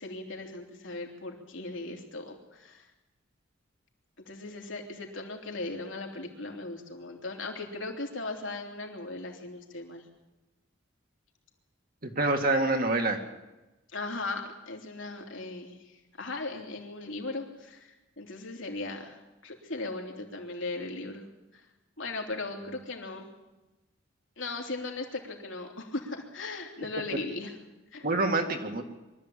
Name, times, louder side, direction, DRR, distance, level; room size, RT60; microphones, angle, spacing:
voice 1, 0.0-2.9 4.2-10.0 13.9-15.8 16.2-21.2 21.5-21.6 22.0-23.3 24.4-27.5 27.9-28.1, left 2 dB, 75° left, 1 dB, 3.3 m, -38 dB
voice 2, 12.0-13.2 28.0-28.8, right 2 dB, 50° right, 4 dB, 2.2 m, -26 dB
23.5 x 13.5 x 8.6 m, 1.1 s
head